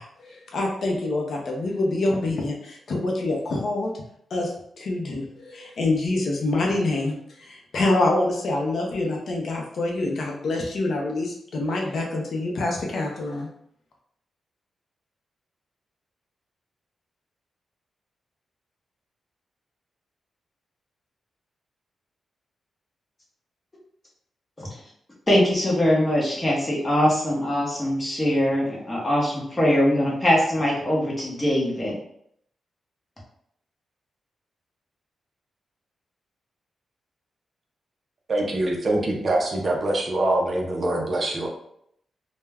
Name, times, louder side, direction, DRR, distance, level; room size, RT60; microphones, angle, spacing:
voice 1, 0.0-3.9 4.3-4.5 4.8-13.5, left 2 dB, 55° left, 0 dB, 0.5 m, -26 dB
voice 2, 25.3-31.9, left 1 dB, 15° left, -4 dB, 0.8 m, -22 dB
voice 3, 38.3-41.5, right 1 dB, 35° right, -1 dB, 0.5 m, -24 dB
2.2 x 2.1 x 3.3 m, 0.70 s
wide cardioid pair, 165°, 0 cm